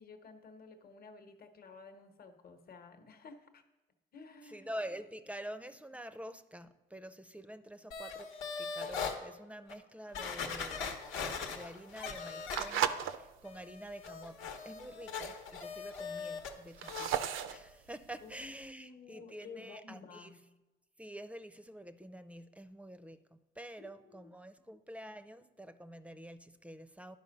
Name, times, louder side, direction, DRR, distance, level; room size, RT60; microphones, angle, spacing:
voice 1, 0.0-3.6 4.1-4.7 18.2-20.5 23.8-24.3, left 4 dB, 50° left, 7 dB, 1.1 m, -53 dB
voice 2, 4.4-8.3 8.6-10.9 11.2-20.3 21.0-27.2, right 1 dB, 5° right, 12 dB, 0.5 m, -47 dB
sound 1, 7.9-9.2 9.7-9.8 10.1-13.1 13.4-16.5 16.8-17.2 17.5-17.6, left 5 dB, 85° left, 1.1 m, -41 dB
sound 2, 10.8-13.2 13.6-14.0 14.4-14.5 14.7-14.8 15.0-15.6 16.1-18.6, right 10 dB, 85° right, 0.5 m, -36 dB
11.0 x 5.2 x 5.2 m, 1.1 s
cardioid pair, 90°, 20 cm